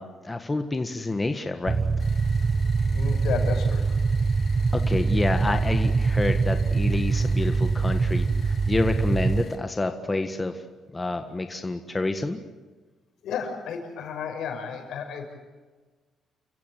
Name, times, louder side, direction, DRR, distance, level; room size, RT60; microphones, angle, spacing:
voice 1, 0.0-1.8 4.7-10.6 10.9-12.4, left 2 dB, 20° left, 6 dB, 1.6 m, -28 dB
sound 1, 1.7-9.4, right 4 dB, 35° right, 0.9 m, -23 dB
sound 2, 2.0-9.6, left 5 dB, 50° left, 3.0 m, -48 dB
voice 2, 2.9-3.9 13.2-15.3, left 6 dB, 75° left, 4 dB, 5.7 m, -32 dB
29.5 x 15.5 x 9.0 m, 1.3 s
cardioid pair, 90°, 0 cm